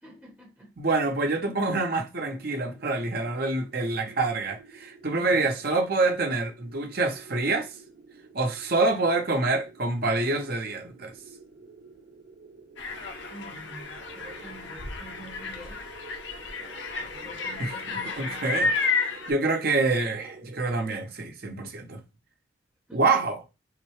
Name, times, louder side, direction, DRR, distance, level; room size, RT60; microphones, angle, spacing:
voice 1, 0.0-0.7 5.1-5.5 13.3-15.9 17.0-18.5 22.9-23.0, right 1 dB, 10° right, 1.2 m, -47 dB
voice 2, 0.8-7.7 8.3-11.1 17.6-17.7 18.2-18.7 19.3-22.0 22.9-23.4, right 3 dB, 50° right, 0.8 m, -26 dB
sound 1, 2.3-21.1, right 3 dB, 85° right, 1.6 m, -50 dB
sound 2, 12.8-19.3, left 4 dB, 70° left, 0.8 m, -31 dB
5.7 x 2.2 x 3.1 m
head